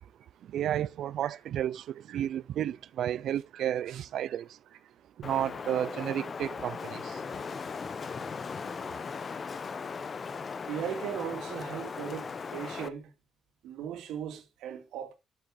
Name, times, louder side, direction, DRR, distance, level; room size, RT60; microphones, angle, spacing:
voice 1, 0.5-4.4 5.2-7.1, right 11 dB, 75° right, 0.5 m, -32 dB
voice 2, 3.5-4.3 10.7-13.1 13.6-15.1, right 9 dB, 90° right, 2.7 m, -38 dB
Wind, 5.2-12.9, left 5 dB, 40° left, 0.9 m, -38 dB
10.5 x 8.5 x 3.9 m
cardioid pair, 90°, 0 cm